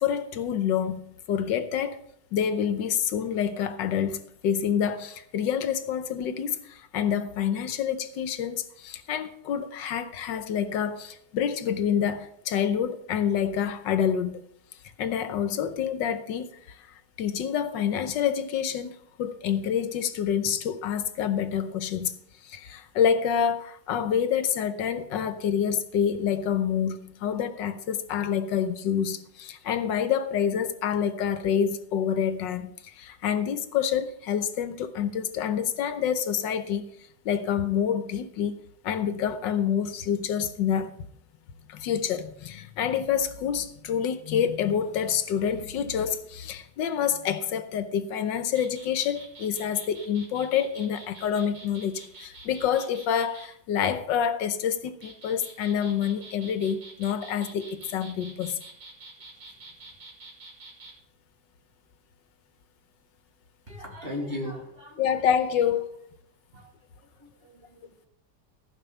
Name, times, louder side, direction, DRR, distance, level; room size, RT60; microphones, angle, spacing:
voice 1, 0.0-2.0 2.3-14.4 15.0-16.9 17.2-22.1 22.4-36.9 37.2-38.6 38.8-40.9 41.7-58.6 65.0-65.9, left 8 dB, 80° left, 1.5 m, -27 dB
sound 1, 48.4-53.5 54.8-60.9, right 3 dB, 90° right, 3.4 m, -47 dB
voice 2, 63.7-65.2 66.5-68.1, left 1 dB, 30° right, 2.5 m, -38 dB
15.0 x 5.5 x 7.0 m
omnidirectional pair, 2.0 m